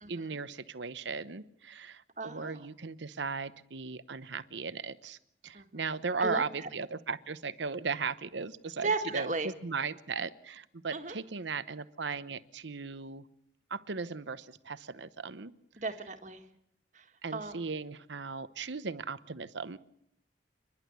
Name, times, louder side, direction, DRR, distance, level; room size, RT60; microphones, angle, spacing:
voice 1, 0.1-5.2 5.4-13.3 13.7-15.5 17.2-19.8, right 4 dB, 80° right, 14 dB, 0.9 m, -37 dB
voice 2, 2.2-2.6 5.5-5.7 6.2-6.7 8.8-9.5 10.9-11.2 15.8-16.4 16.9-17.0 17.3-17.6, right 3 dB, 40° right, 6 dB, 1.8 m, -35 dB
29.5 x 11.5 x 8.2 m, 0.76 s
head